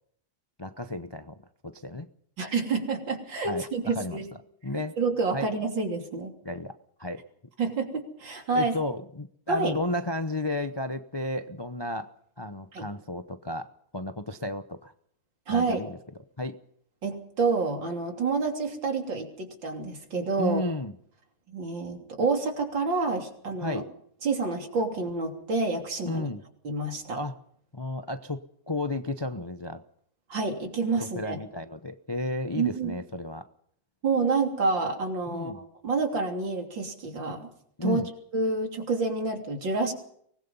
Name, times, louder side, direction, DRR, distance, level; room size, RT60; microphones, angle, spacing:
voice 1, 0.6-2.1 3.5-4.2 4.6-5.0 5.3-5.5 6.4-6.7 7.0-7.2 8.5-12.1 12.4-13.7 13.9-14.9 15.5-16.0 16.4-16.6 20.4-20.9 23.6-23.9 26.0-26.4 27.1-27.4 27.7-28.4 28.7-29.8 30.9-33.4 35.3-35.6 37.8-38.1, left 1 dB, 45° left, 9 dB, 0.3 m, -33 dB
voice 2, 2.4-4.2 5.0-6.3 7.6-8.7 9.5-9.7 12.7-12.9 15.5-15.8 17.0-20.6 21.5-23.8 24.2-26.3 26.6-27.2 30.3-31.4 32.6-32.9 34.0-37.5 37.8-38.0 38.3-39.9, right 3 dB, 70° right, 4 dB, 3.9 m, -28 dB
24.0 x 20.0 x 5.5 m, 0.66 s
omnidirectional pair, 2.1 m